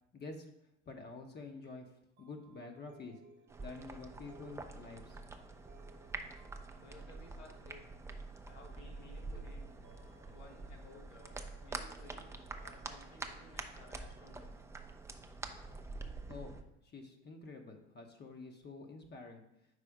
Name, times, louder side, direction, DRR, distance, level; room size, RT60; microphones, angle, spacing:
voice 1, 0.1-0.5 0.9-1.8 2.2-3.2 3.6-5.2 16.3-16.6 16.8-19.4, left 3 dB, 30° left, 3 dB, 0.8 m, -48 dB
sound 1, 2.2-14.8, right 3 dB, 35° right, 1.0 m, -65 dB
sound 2, 3.5-16.6, right 3 dB, 10° right, 0.4 m, -46 dB
voice 2, 6.7-7.8 8.4-9.6 10.3-11.3 11.6-12.3 12.6-14.6 16.2-16.3, left 2 dB, 85° left, -1 dB, 1.5 m, -57 dB
5.1 x 4.2 x 4.8 m, 0.81 s
hypercardioid pair, 75°, 34 cm